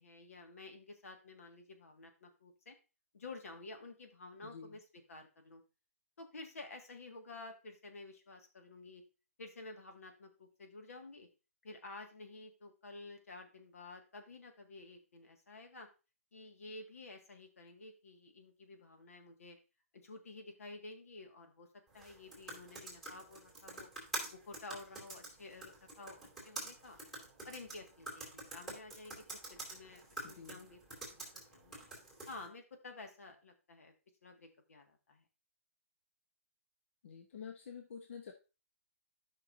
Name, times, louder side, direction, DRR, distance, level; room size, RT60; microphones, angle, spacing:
voice 1, 0.0-2.8 3.1-5.6 6.2-9.0 9.4-11.3 11.6-15.9 16.3-19.6 19.9-21.7 21.9-23.9 24.3-26.2 26.4-27.0 27.4-29.2 29.5-31.8 32.3-33.9 34.2-35.2, left 2 dB, 85° left, 4 dB, 1.8 m, -51 dB
voice 2, 4.4-4.8 30.2-30.7 37.0-38.3, left 6 dB, 60° left, 4 dB, 1.0 m, -49 dB
sound 1, 21.9-32.5, right 2 dB, ahead, 2.8 m, -47 dB
11.5 x 5.7 x 2.6 m, 0.31 s
hypercardioid pair, 155°, 8 cm